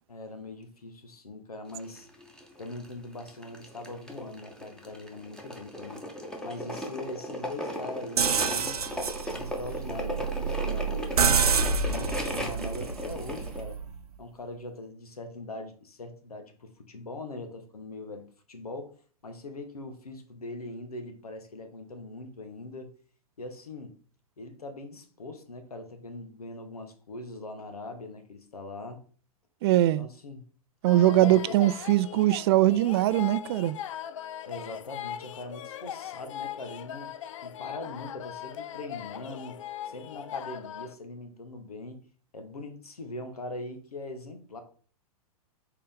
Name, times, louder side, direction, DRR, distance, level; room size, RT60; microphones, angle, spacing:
voice 1, 0.1-2.1 2.6-6.1 6.4-8.8 9.3-13.8 14.2-19.0 19.2-22.9 23.4-24.0 24.4-29.0 29.9-30.4 31.1-31.6 34.4-37.1 37.4-42.0 42.3-44.6, left 2 dB, 80° left, 1.5 m, -41 dB
sound 1, 1.7-13.6, equal, 5° left, 1.3 m, -37 dB
sound 2, 8.2-14.0, right 5 dB, 80° right, 0.7 m, -28 dB
voice 2, 29.6-30.1 30.8-33.8, right 14 dB, 45° right, 0.4 m, -22 dB
sound 3, 30.8-40.9, left 10 dB, 55° left, 0.5 m, -40 dB
6.8 x 4.6 x 3.7 m
figure-of-eight pair, 105°, 19 cm